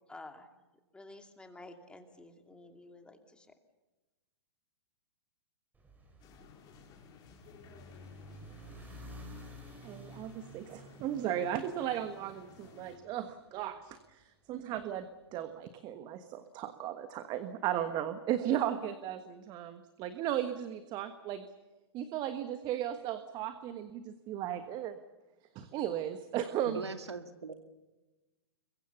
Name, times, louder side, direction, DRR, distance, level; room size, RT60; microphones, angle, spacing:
voice 1, 0.1-0.5 0.9-3.5, left 2 dB, 5° left, 5 dB, 2.7 m, -51 dB
sound 1, 5.7-14.1, equal, 10° right, 4.2 m, -52 dB
sound 2, 6.2-13.0, left 7 dB, 30° left, 5.2 m, -57 dB
voice 2, 9.8-21.4 21.9-25.0 25.5-26.8, right 11 dB, 30° right, 10 dB, 1.4 m, -36 dB
voice 3, 26.6-27.5, right 4 dB, 80° right, 8 dB, 2.1 m, -40 dB
27.5 x 23.0 x 7.0 m, 1.1 s
hypercardioid pair, 115°, 14 cm